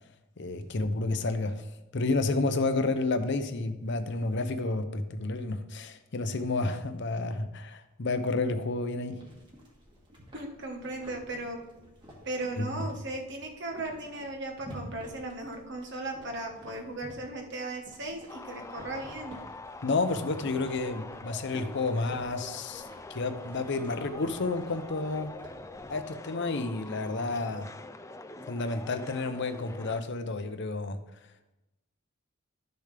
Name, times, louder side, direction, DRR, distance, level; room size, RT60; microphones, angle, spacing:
voice 1, 0.4-1.6 1.9-9.2 12.6-12.7 19.8-22.8 23.1-25.3 25.9-27.7 28.5-31.0, left 3 dB, 60° left, 9 dB, 0.7 m, -30 dB
sound 1, 9.1-26.1, equal, 25° right, 2.0 m, -50 dB
voice 2, 10.3-11.6 12.2-19.4, right 2 dB, 60° right, 3 dB, 1.4 m, -37 dB
sound 2, 18.3-30.0, left 2 dB, 15° left, 0.4 m, -45 dB
12.0 x 6.6 x 3.4 m, 0.98 s
head